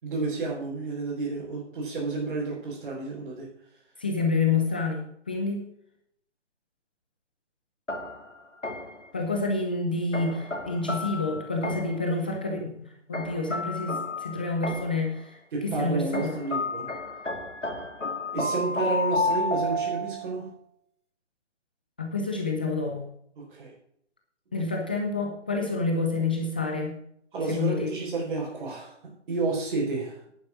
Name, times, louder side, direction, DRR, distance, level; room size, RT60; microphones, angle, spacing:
voice 1, 0.0-3.5 15.5-16.9 18.3-20.5 23.4-23.7 24.5-24.6 27.3-30.3, right 3 dB, 50° right, -5 dB, 4.8 m, -31 dB
voice 2, 4.0-5.7 9.1-16.4 22.0-23.1 24.5-26.9 27.5-27.9, left 3 dB, 10° left, 2 dB, 0.5 m, -28 dB
sound 1, 7.9-9.1 10.1-12.1 13.1-15.1 16.1-20.4, left 2 dB, 85° left, 2.4 m, -31 dB
10.5 x 9.4 x 6.0 m, 0.70 s
figure-of-eight pair, 135°, 36 cm